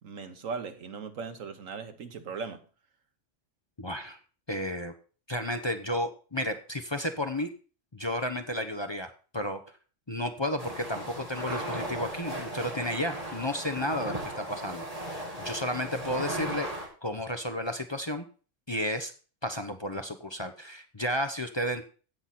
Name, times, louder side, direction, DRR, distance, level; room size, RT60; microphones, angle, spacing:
voice 1, 0.0-2.6, right 5 dB, 80° right, 1.5 m, -38 dB
voice 2, 3.8-4.2 4.5-4.9 5.3-7.5 7.9-9.6 10.1-14.9 15.1-16.7 17.0-18.2 18.7-19.1 19.4-21.9, left 1 dB, 25° left, 0.8 m, -32 dB
sound 1, 10.6-16.9, right 1 dB, 30° right, 3.0 m, -36 dB
16.0 x 6.0 x 4.2 m
omnidirectional pair, 1.3 m